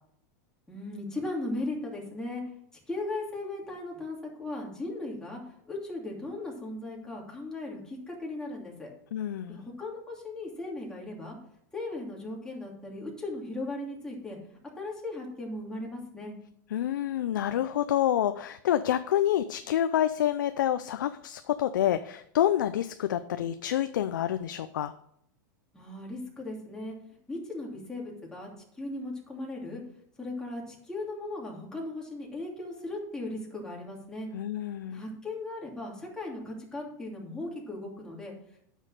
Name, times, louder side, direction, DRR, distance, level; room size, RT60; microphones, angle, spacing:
voice 1, 0.7-2.4 2.9-5.4 5.7-8.9 9.5-11.4 11.7-14.4 14.8-16.3 25.7-27.0 27.3-28.5 28.8-29.8 30.2-34.3 34.9-38.3, left 2 dB, 5° left, -2 dB, 2.8 m, -37 dB
voice 2, 9.1-9.6 16.7-24.9 34.3-35.0, left 11 dB, 90° left, 11 dB, 0.5 m, -28 dB
8.9 x 6.4 x 6.4 m, 0.71 s
supercardioid pair, 130°, 10 cm